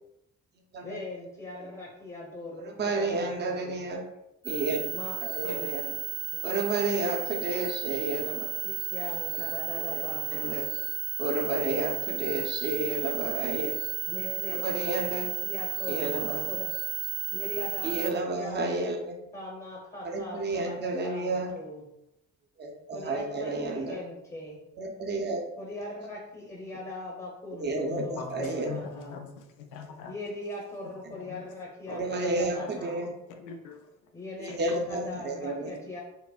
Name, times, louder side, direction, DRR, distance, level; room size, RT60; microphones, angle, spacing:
voice 1, 0.8-3.8 4.9-5.1 5.4-5.7 6.3-6.4 8.6-10.8 14.1-14.6 15.4-16.6 17.3-18.7 19.3-21.9 22.9-24.6 25.6-29.2 30.0-33.1 34.1-36.0, left 2 dB, 20° left, -2 dB, 0.9 m, -40 dB
voice 2, 2.6-4.0 4.4-5.9 6.4-8.5 9.7-10.6 11.2-13.7 14.5-15.3 15.9-16.6 17.8-19.2 20.0-21.5 22.6-24.0 24.8-25.4 27.6-28.8 31.9-33.1 34.4-35.7, right 2 dB, 35° right, 1 dB, 0.6 m, -31 dB
sound 1, 4.4-18.1, right 11 dB, 75° right, 0.7 m, -33 dB
voice 3, 27.9-30.1 31.1-31.4 31.9-32.1 32.5-33.9 34.5-34.8, left 5 dB, 90° left, 5 dB, 0.6 m, -42 dB
5.0 x 2.1 x 2.3 m, 0.87 s
cardioid pair, 90°, 30 cm